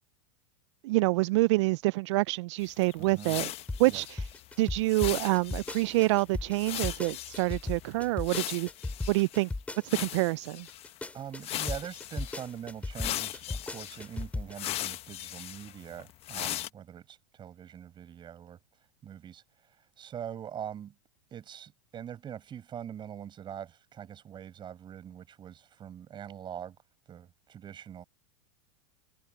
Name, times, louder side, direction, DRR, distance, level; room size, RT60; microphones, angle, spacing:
voice 1, 0.8-3.5 3.8-4.3 4.6-8.7 9.1-9.5 9.8-10.7, right 21 dB, 65° right, 0.4 m, -27 dB
sound 1, 2.6-9.5 9.9-11.0 11.4-12.5 12.9-16.7, left 14 dB, 40° left, 1.2 m, -39 dB
voice 2, 3.0-3.4 3.9-4.0 11.1-18.6 19.0-20.9 21.3-26.8 27.1-28.0, right 9 dB, 30° right, 7.6 m, -43 dB
sound 2, 3.5-10.2 10.7-14.7, left 2 dB, 10° left, 5.3 m, -36 dB
hypercardioid pair, 120°, 16 cm